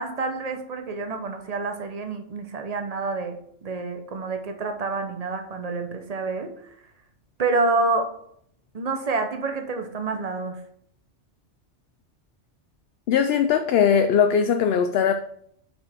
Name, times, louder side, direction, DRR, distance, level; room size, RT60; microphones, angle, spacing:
voice 1, 0.0-6.5 7.4-8.1 8.7-10.6, right 3 dB, 35° right, 5 dB, 0.9 m, -28 dB
voice 2, 13.1-15.1, left 7 dB, 65° left, 7 dB, 0.7 m, -20 dB
8.0 x 5.3 x 3.5 m, 0.70 s
omnidirectional pair, 1.2 m